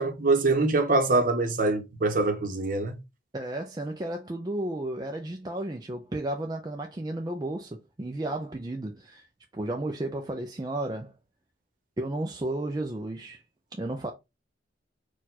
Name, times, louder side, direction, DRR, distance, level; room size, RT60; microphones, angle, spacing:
voice 1, 0.0-3.0, right 3 dB, 45° right, 0.9 m, -24 dB
voice 2, 3.3-9.3 9.5-11.1 12.0-13.4 13.7-14.1, right 1 dB, 20° right, 0.4 m, -33 dB
4.4 x 2.4 x 4.1 m
head